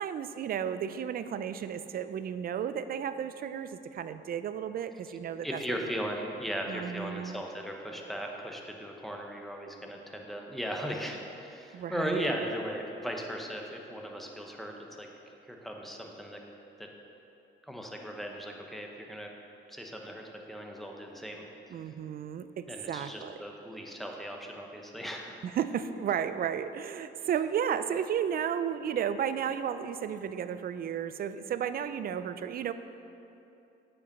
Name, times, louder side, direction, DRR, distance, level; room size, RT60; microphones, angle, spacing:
voice 1, 0.0-5.9 6.7-7.4 11.7-12.3 21.7-23.4 25.4-32.7, right 8 dB, 50° right, 12 dB, 0.4 m, -33 dB
voice 2, 5.4-15.1 15.5-16.4 16.8-16.9 17.6-19.3 19.7-20.2 20.5-21.4 22.7-25.4, equal, ahead, 1 dB, 1.0 m, -37 dB
8.1 x 5.3 x 5.4 m, 2.9 s
cardioid pair, 90°, 20 cm